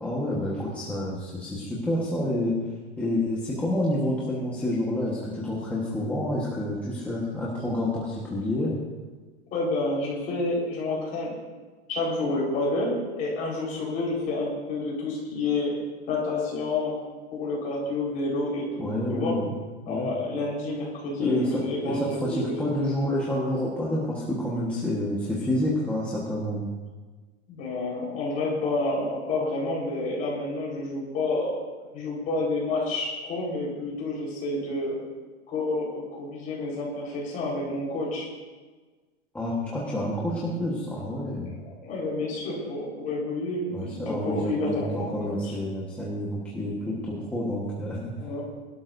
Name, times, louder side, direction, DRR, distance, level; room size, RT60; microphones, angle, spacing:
voice 1, 0.0-2.5 3.0-8.8 18.8-19.5 19.9-20.1 21.2-26.7 39.3-41.5 43.7-48.1, left 1 dB, 5° left, -6 dB, 1.3 m, -28 dB
voice 2, 9.5-11.3 11.9-15.7 16.1-17.0 17.3-18.8 19.1-19.3 19.9-22.5 27.5-31.5 31.9-35.0 35.5-38.3 41.4-45.1 45.4-45.5 48.2-48.5, left 2 dB, 25° left, -4 dB, 4.4 m, -29 dB
22.0 x 12.5 x 2.6 m, 1.3 s
supercardioid pair, 170°, 33 cm